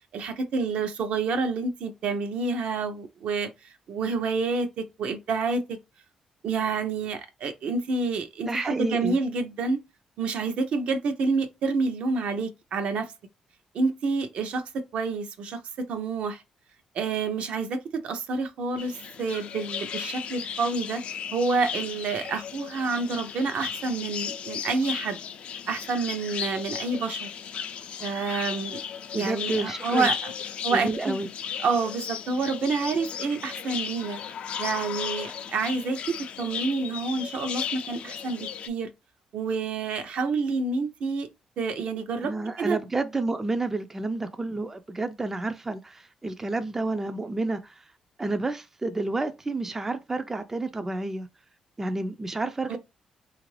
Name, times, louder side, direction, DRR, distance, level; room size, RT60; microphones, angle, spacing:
voice 1, 0.1-5.8 6.4-9.8 10.2-13.1 13.7-16.4 16.9-21.0 21.3-25.2 25.7-27.3 28.0-28.8 29.1-30.3 30.6-31.2 31.6-34.2 34.6-38.9 39.3-41.3 41.6-42.8 52.7-52.8, right 4 dB, 65° right, 0.6 m, -28 dB
voice 2, 8.5-9.2 29.1-30.1 30.7-31.3 42.2-47.9 48.2-51.3 51.8-52.8, right 2 dB, 15° right, 0.3 m, -30 dB
sound 1, 18.8-38.7, left 8 dB, 60° left, 0.3 m, -35 dB
2.9 x 2.5 x 3.1 m
cardioid pair, 100°, 2 cm